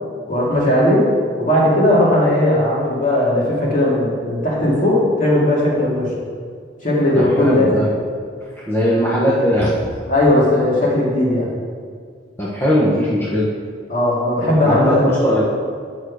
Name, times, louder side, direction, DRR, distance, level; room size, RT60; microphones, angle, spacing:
voice 1, 0.3-1.1 1.4-6.1 6.8-7.8 10.1-11.5 13.9-15.0, left 1 dB, 40° left, -5 dB, 2.5 m, -17 dB
voice 2, 7.2-7.9 8.5-9.8 12.4-13.5 14.6-15.4, equal, 15° left, -8 dB, 1.1 m, -18 dB
9.3 x 6.3 x 4.8 m, 2.1 s
head